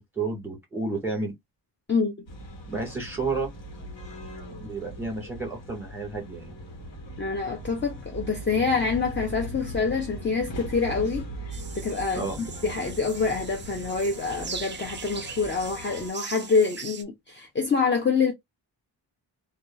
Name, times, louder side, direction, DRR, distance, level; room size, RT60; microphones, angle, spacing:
voice 1, 0.0-1.3 2.7-3.5 4.6-6.5 12.1-12.4, right 3 dB, 5° right, 1.6 m, -31 dB
sound 1, 2.3-16.1, right 1 dB, 80° left, 1.3 m, -39 dB
voice 2, 7.2-11.3 11.8-18.3, left 5 dB, 25° left, 0.6 m, -26 dB
sound 2, 11.5-17.0, right 6 dB, 30° right, 0.3 m, -40 dB
2.8 x 2.4 x 2.3 m
wide cardioid pair, 120°, 44 cm